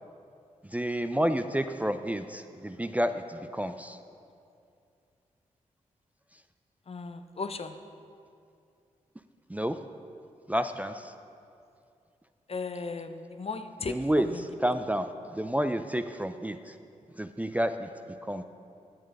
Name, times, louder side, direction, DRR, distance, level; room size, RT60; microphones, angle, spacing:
voice 1, 0.7-4.0 9.5-9.8 10.5-11.1 13.9-16.7 17.2-17.9 18.3-18.4, equal, 10° right, 9 dB, 0.4 m, -30 dB
voice 2, 6.9-7.7 12.5-13.9, left 4 dB, 45° left, 9 dB, 0.6 m, -36 dB
9.0 x 6.6 x 5.3 m, 2.5 s
supercardioid pair, 40°, 14 cm